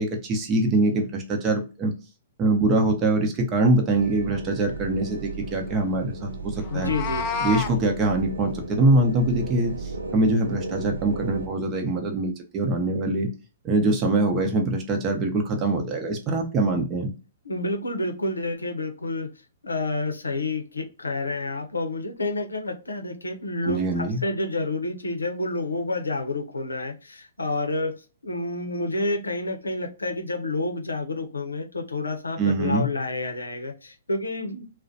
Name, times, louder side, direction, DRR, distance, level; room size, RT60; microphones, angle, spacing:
voice 1, 0.0-1.9 2.4-6.9 7.4-13.3 13.6-17.1 23.6-24.2 32.4-32.9, right 2 dB, 25° right, 2 dB, 0.7 m, -23 dB
sound 1, 3.9-11.5, right 3 dB, 85° right, 0.4 m, -35 dB
Meow, 6.6-7.7, left 5 dB, 35° left, 0.4 m, -29 dB
voice 2, 6.7-7.3 17.4-19.3 19.6-27.9 28.2-34.6, left 2 dB, 90° left, 4 dB, 0.6 m, -29 dB
2.3 x 2.1 x 2.6 m, 0.33 s
hypercardioid pair, 120°, 0 cm